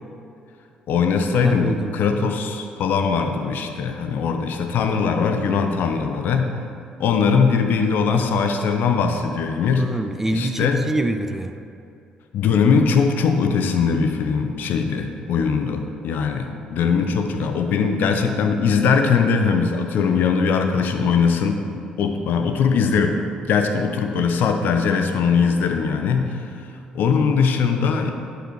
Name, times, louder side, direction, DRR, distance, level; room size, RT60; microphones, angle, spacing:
voice 1, 0.9-6.5 7.0-9.9 10.3-10.8 12.3-23.2 23.4-26.7 26.9-28.1, left 5 dB, 55° left, 5 dB, 0.7 m, -20 dB
voice 2, 1.4-2.0 9.8-11.5 16.7-16.9, right 1 dB, 10° right, 8 dB, 0.5 m, -26 dB
11.5 x 5.7 x 3.2 m, 2.6 s
figure-of-eight pair, 45°, 4 cm